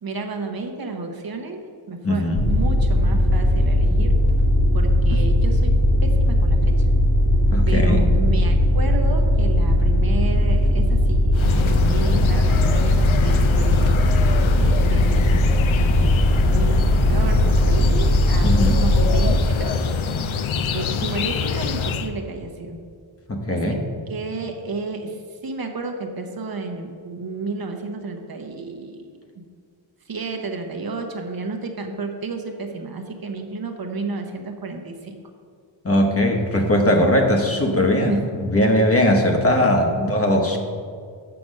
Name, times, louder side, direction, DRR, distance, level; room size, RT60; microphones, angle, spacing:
voice 1, 0.0-1.6 1.9-4.2 4.7-5.7 6.0-6.6 7.7-14.1 14.6-15.5 15.8-19.8 20.7-22.8 23.5-23.8 24.1-25.2 25.4-29.2 30.1-35.2 38.1-38.2 40.5-40.6, right 3 dB, 50° right, 4 dB, 0.9 m, -31 dB
voice 2, 2.0-2.5 5.1-5.2 7.5-8.1 18.4-18.8 23.3-23.8 35.8-40.6, left 1 dB, 30° left, 1 dB, 1.0 m, -19 dB
sound 1, 2.3-19.3, left 1 dB, 55° left, 1.2 m, -18 dB
sound 2, 11.3-22.1, left 6 dB, 80° left, 0.7 m, -25 dB
7.7 x 5.9 x 6.3 m, 2.2 s
wide cardioid pair, 150°, 47 cm